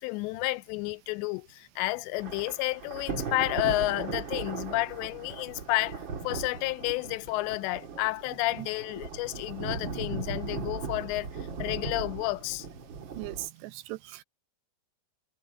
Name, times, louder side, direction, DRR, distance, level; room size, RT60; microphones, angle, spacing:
voice 1, 0.0-12.7, left 20 dB, 90° left, 2.8 m, -31 dB
Thunder / Rain, 2.2-13.5, right 5 dB, 40° right, 1.9 m, -38 dB
sound 1, 4.6-11.7, left 6 dB, 50° left, 5.6 m, -59 dB
voice 2, 13.2-14.2, right 18 dB, 80° right, 2.9 m, -39 dB
omnidirectional pair, 5.0 m